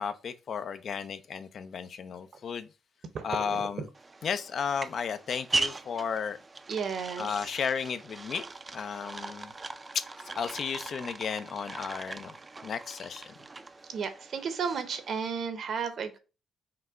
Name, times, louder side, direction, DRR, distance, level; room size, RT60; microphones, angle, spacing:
voice 1, 0.0-2.7 3.2-3.9 4.2-6.4 7.2-8.5 8.7-9.5 9.9-10.0 10.4-12.4 12.6-13.3, left 6 dB, 55° left, 0.4 m, -33 dB
sound 1, 3.9-15.2, right 3 dB, 25° right, 0.4 m, -39 dB
voice 2, 6.7-7.3 13.9-16.2, right 6 dB, 60° right, 0.8 m, -33 dB
5.8 x 2.2 x 3.5 m
cardioid pair, 90°, 0 cm